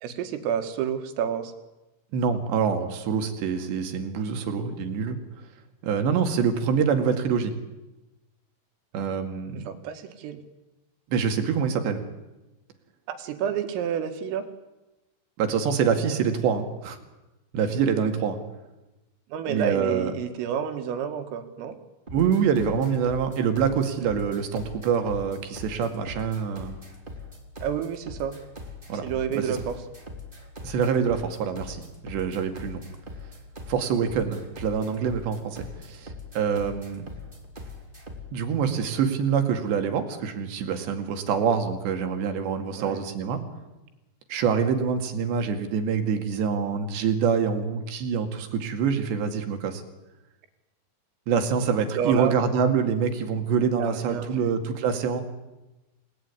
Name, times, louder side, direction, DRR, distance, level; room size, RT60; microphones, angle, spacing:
voice 1, 0.0-1.5 9.7-10.4 13.1-14.5 19.3-21.8 27.6-28.4 28.9-29.8 42.8-43.0 52.0-52.3 53.8-54.5, right 8 dB, 80° right, 8 dB, 4.5 m, -29 dB
voice 2, 2.1-5.2 5.8-7.5 8.9-9.7 11.1-12.0 15.4-17.0 17.5-18.4 19.5-20.1 22.1-26.8 28.9-29.0 29.3-29.6 30.6-32.8 33.7-37.0 38.3-43.4 44.3-49.8 51.3-55.2, right 6 dB, 65° right, 6 dB, 4.2 m, -25 dB
sound 1, 22.1-38.4, left 2 dB, 15° right, 2.6 m, -41 dB
28.0 x 19.5 x 9.8 m, 1.0 s
omnidirectional pair, 5.9 m